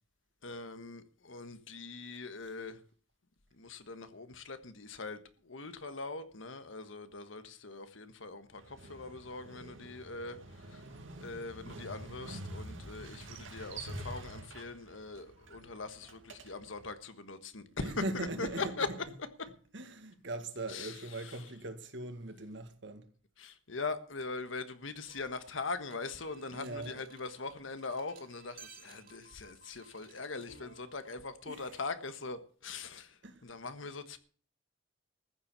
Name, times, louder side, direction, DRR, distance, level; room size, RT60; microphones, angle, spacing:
voice 1, 0.4-2.8 3.5-10.9 11.2-17.9 18.4-18.9 20.7-21.4 23.4-34.2, left 3 dB, 85° left, 1.4 m, -42 dB
Motorcycle, 8.5-16.9, right 1 dB, 85° right, 2.4 m, -47 dB
voice 2, 17.7-19.0 19.7-23.1 26.5-27.0 31.5-31.7 33.2-33.5, right 2 dB, 65° right, 2.0 m, -40 dB
sound 1, 25.1-31.2, right 6 dB, 45° right, 2.6 m, -58 dB
14.5 x 7.4 x 8.2 m
head